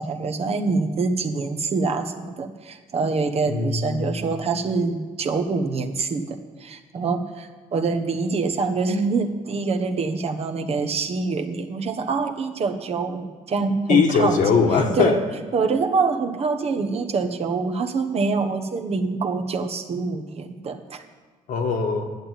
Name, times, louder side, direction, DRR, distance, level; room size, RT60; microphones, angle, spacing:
voice 1, 0.0-14.4 15.0-15.2 15.5-21.0, right 4 dB, 50° right, 6 dB, 1.2 m, -25 dB
voice 2, 3.5-4.2 13.9-15.2 21.5-22.1, left 5 dB, 70° left, 4 dB, 1.5 m, -20 dB
11.0 x 7.3 x 9.2 m, 1.4 s
cardioid pair, 95°, 14 cm